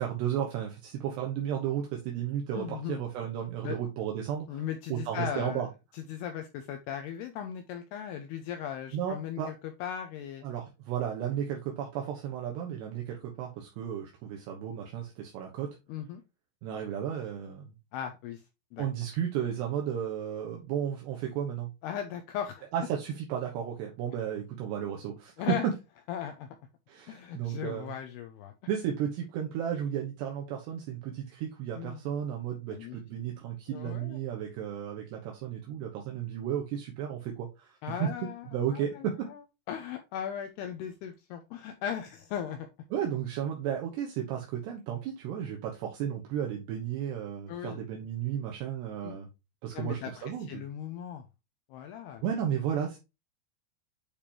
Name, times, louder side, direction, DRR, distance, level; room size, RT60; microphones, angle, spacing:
voice 1, 0.0-5.7 8.9-9.5 10.4-15.8 16.6-17.7 18.8-21.7 22.7-25.7 26.9-27.9 28.7-38.1 38.5-39.3 42.9-49.3 49.6-50.6 52.2-53.0, right 9 dB, 70° right, 1 dB, 3.0 m, -33 dB
voice 2, 2.5-3.0 3.6-3.8 4.5-5.7 5.9-9.5 9.8-10.4 15.9-16.2 17.9-18.4 18.7-18.9 21.8-22.7 25.4-25.7 26.1-26.5 27.1-28.5 31.8-32.0 32.7-33.0 33.7-34.2 37.8-39.4 39.7-42.7 47.5-47.8 49.0-49.2 49.7-51.2 51.7-52.2, left 9 dB, 85° left, 6 dB, 2.4 m, -37 dB
8.6 x 4.9 x 2.9 m, 0.26 s
omnidirectional pair, 5.4 m